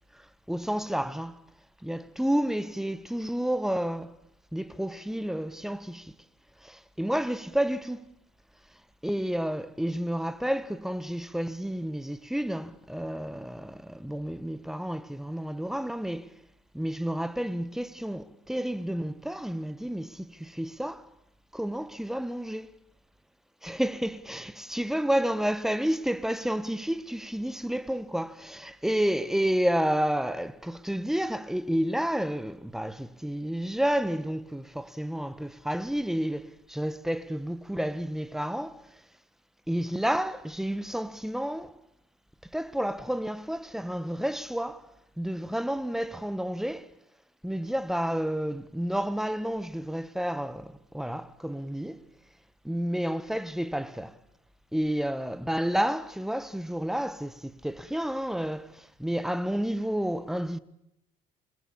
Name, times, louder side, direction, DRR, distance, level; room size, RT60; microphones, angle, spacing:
voice 1, 0.1-1.4 1.8-4.2 4.5-6.1 6.6-8.1 9.0-16.4 16.7-21.1 21.5-22.8 23.6-39.0 39.7-41.8 42.5-44.9 45.2-46.9 47.4-52.0 52.6-54.2 54.7-60.6, equal, ahead, 1.5 m, -30 dB
28.5 x 20.5 x 7.1 m
cardioid pair, 110°, 17 cm